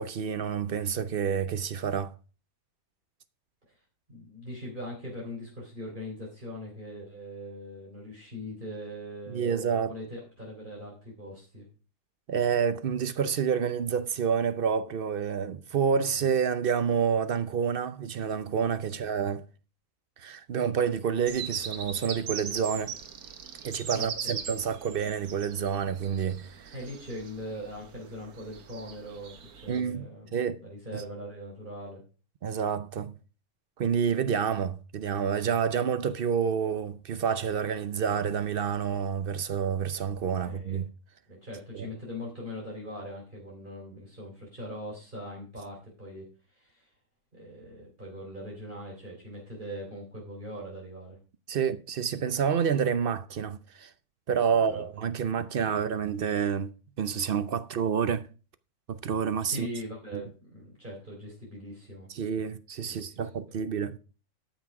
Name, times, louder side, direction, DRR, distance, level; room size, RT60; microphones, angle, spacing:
voice 1, 0.0-2.1 9.3-9.9 12.3-19.4 20.2-23.0 23.6-26.7 29.7-30.6 30.9-31.0 32.4-33.1 33.8-40.9 41.7-41.9 51.5-53.9 54.3-56.7 57.0-58.3 58.9-59.7 60.1-60.2 62.1-64.0, right 7 dB, 55° right, 0.6 m, -28 dB
voice 2, 4.1-11.6 16.1-16.3 18.9-19.1 23.9-24.4 26.7-30.3 30.6-32.0 40.4-40.9 41.3-46.2 46.5-46.9 47.3-51.2 54.5-54.9 59.4-62.1 62.8-63.1, equal, 30° right, 3.8 m, -41 dB
sound 1, 21.3-29.8, right 7 dB, 80° right, 1.6 m, -40 dB
12.5 x 6.0 x 4.7 m
omnidirectional pair, 1.6 m